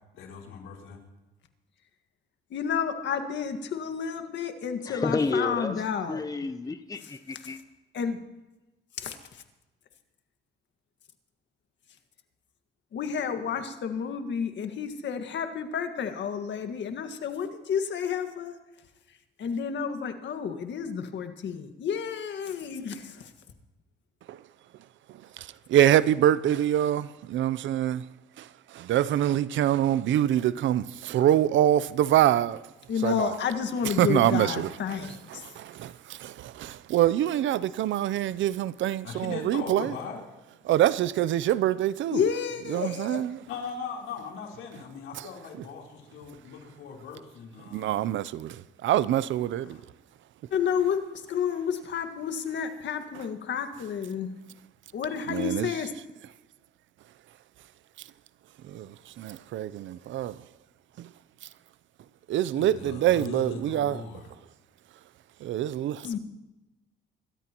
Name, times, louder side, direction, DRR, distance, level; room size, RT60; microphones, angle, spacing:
voice 1, 0.1-1.0 39.0-40.2 43.5-48.0 48.9-49.2 49.6-49.8 62.5-64.3, left 5 dB, 90° left, 3.7 m, -40 dB
voice 2, 2.5-6.2 7.9-8.2 9.0-9.2 12.9-18.5 19.4-23.3 32.9-35.2 42.1-43.2 50.5-51.0 51.3-54.3 54.9-55.9 66.0-66.2, left 7 dB, 65° left, 1.8 m, -30 dB
voice 3, 4.9-7.6, left 3 dB, 20° left, 0.8 m, -31 dB
voice 4, 25.4-28.0 28.9-32.6 33.0-33.3 33.8-39.9 40.6-42.2 42.7-43.4 47.7-49.8 55.3-55.8 58.7-60.4 61.0-61.1 62.3-64.0 65.4-66.1, right 12 dB, 75° right, 0.6 m, -25 dB
26.0 x 13.5 x 3.0 m
cardioid pair, 90°, 20 cm